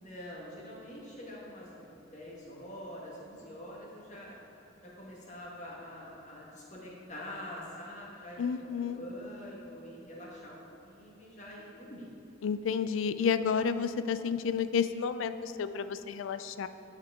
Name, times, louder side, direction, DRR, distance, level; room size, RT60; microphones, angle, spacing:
voice 1, 0.0-4.4 4.8-10.6 10.8-12.1, left 1 dB, 40° left, -4 dB, 1.5 m, -45 dB
voice 2, 8.4-9.0 12.4-16.7, left 6 dB, 80° left, 12 dB, 0.3 m, -31 dB
9.6 x 5.8 x 3.6 m, 2.9 s
head